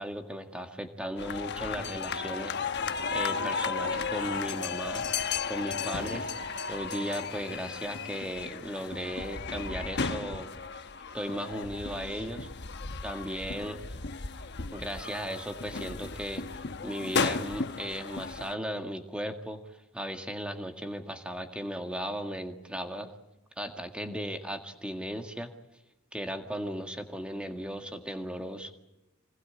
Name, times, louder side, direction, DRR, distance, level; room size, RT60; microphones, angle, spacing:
voice 1, 0.0-2.6 3.1-5.1 5.5-10.5 11.1-12.5 13.0-13.8 14.7-19.6 19.9-23.2 23.6-25.5 26.1-28.7, equal, 5° right, 5 dB, 1.9 m, -36 dB
sound 1, 1.2-18.6, left 5 dB, 50° left, 1.1 m, -34 dB
25.5 x 20.0 x 8.8 m, 0.96 s
head